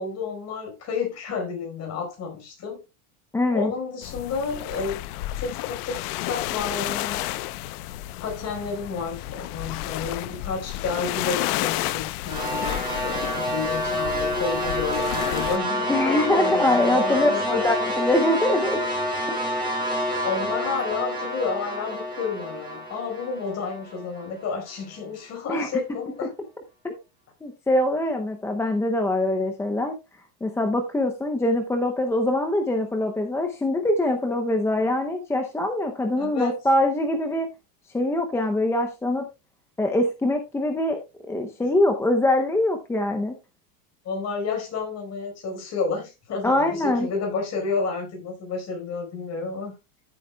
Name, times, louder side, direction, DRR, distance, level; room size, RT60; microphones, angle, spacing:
voice 1, 0.0-2.8 3.5-5.1 5.4-7.3 8.2-17.7 19.8-26.3 36.2-36.6 41.6-41.7 44.0-49.8, left 5 dB, 30° left, 4.6 m, -31 dB
voice 2, 3.3-3.7 15.9-18.8 19.3-19.4 25.5-25.7 26.8-26.9 27.4-30.0 30.4-37.5 37.9-39.3 39.8-41.0 41.3-43.3 46.4-47.1, left 1 dB, 5° left, 0.6 m, -23 dB
sound 1, 4.0-15.6, left 16 dB, 70° left, 0.8 m, -31 dB
sound 2, 12.3-24.5, equal, 10° right, 5.5 m, -28 dB
14.0 x 8.1 x 2.3 m
supercardioid pair, 155°, 47 cm